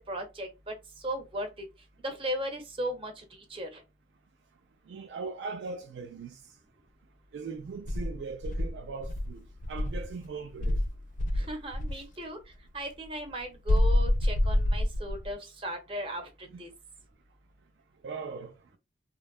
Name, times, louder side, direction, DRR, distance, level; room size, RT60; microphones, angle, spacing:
voice 1, 0.1-1.5 2.0-3.8 11.4-12.4 12.7-16.7, equal, 30° right, 0.7 m, -37 dB
voice 2, 4.9-6.3 7.3-10.8 11.9-12.0 16.5-16.6 18.0-18.5, right 4 dB, 70° right, 0.3 m, -39 dB
Insect, 7.8-10.1 10.6-12.0 13.7-15.3, left 1 dB, 45° left, 0.4 m, -27 dB
2.7 x 2.2 x 2.3 m
head